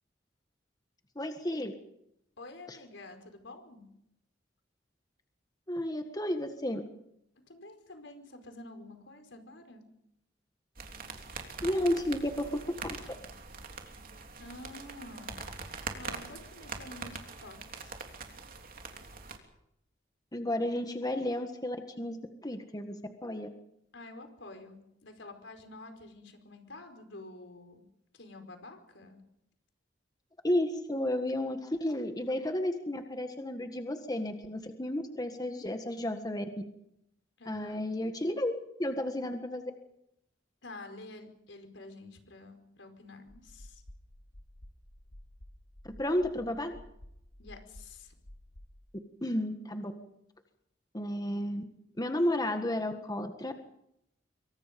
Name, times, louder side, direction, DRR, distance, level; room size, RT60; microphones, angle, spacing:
voice 1, 1.1-1.7 2.7-2.8 5.7-6.8 11.6-13.0 20.3-23.5 30.4-36.4 37.5-38.5 38.8-39.7 46.0-46.7 49.2-49.9 50.9-51.6 52.0-53.5, left 1 dB, 20° left, 6 dB, 1.6 m, -32 dB
voice 2, 2.4-3.8 7.5-9.8 14.4-15.4 15.9-18.0 23.9-27.8 28.1-29.2 37.4-37.8 40.6-43.8 47.4-48.1, left 2 dB, 80° left, 6 dB, 4.8 m, -49 dB
sound 1, 10.8-19.4, right 4 dB, 50° right, 3.3 m, -43 dB
sound 2, 43.3-48.8, left 1 dB, 65° left, 2.4 m, -52 dB
26.0 x 24.5 x 5.3 m, 0.81 s
head